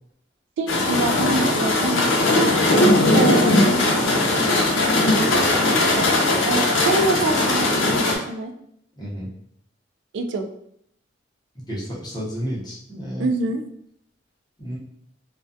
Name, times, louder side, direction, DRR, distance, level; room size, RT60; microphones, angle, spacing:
voice 1, 0.6-2.1 3.1-3.9 5.7-8.5 10.1-10.5 13.2-13.6, right 3 dB, 70° right, 6 dB, 0.3 m, -25 dB
sound 1, 0.7-8.2, left 2 dB, 80° left, 0.5 m, -19 dB
voice 2, 9.0-9.3 11.7-13.3 14.6-14.8, equal, 20° left, -7 dB, 0.7 m, -31 dB
2.3 x 2.2 x 2.5 m, 0.71 s
head